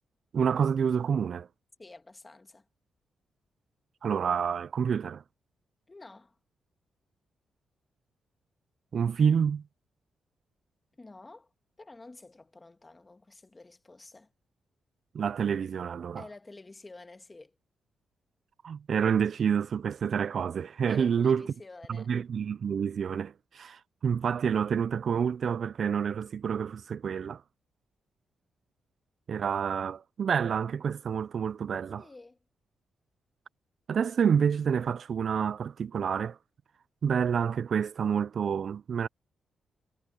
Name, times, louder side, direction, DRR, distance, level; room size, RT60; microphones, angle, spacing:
voice 1, 0.3-1.5 4.0-5.2 8.9-9.6 15.1-16.2 18.6-21.5 22.1-27.4 29.3-32.0 33.9-36.4 37.0-39.1, right 7 dB, 55° right, 0.3 m, -28 dB
voice 2, 1.8-2.7 5.9-6.4 10.9-11.5 11.8-14.3 16.2-17.5 20.9-22.1 32.0-32.4, left 2 dB, 20° left, 1.6 m, -50 dB
cardioid pair, 105°, 0 cm